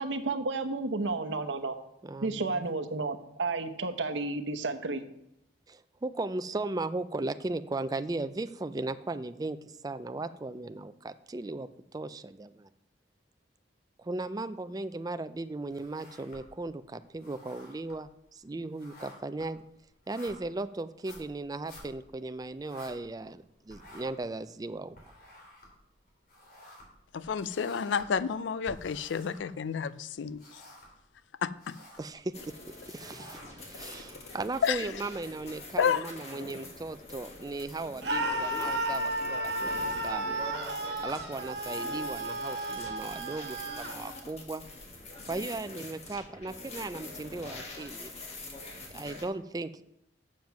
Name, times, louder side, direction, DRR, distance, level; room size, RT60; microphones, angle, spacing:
voice 1, 0.0-1.8 2.2-5.0, right 3 dB, 85° right, 0.9 m, -32 dB
voice 2, 2.0-2.7 5.7-12.7 14.0-19.6 20.1-24.9 32.0-40.4 41.0-44.6 45.2-48.1 48.9-49.8, right 2 dB, 20° right, 0.4 m, -37 dB
sound 1, 15.7-16.7 17.0-23.4 23.7-29.9 30.2-31.1 31.4-32.1 32.7-33.7, left 1 dB, 55° left, 3.1 m, -53 dB
voice 3, 27.1-30.4 31.4-31.8 34.6-34.9 35.8-36.1, left 6 dB, 85° left, 0.4 m, -30 dB
sound 2, 32.3-49.3, left 2 dB, 35° left, 1.7 m, -44 dB
Screaming, 38.0-44.0, right 1 dB, 65° right, 1.3 m, -33 dB
7.4 x 7.4 x 5.9 m
head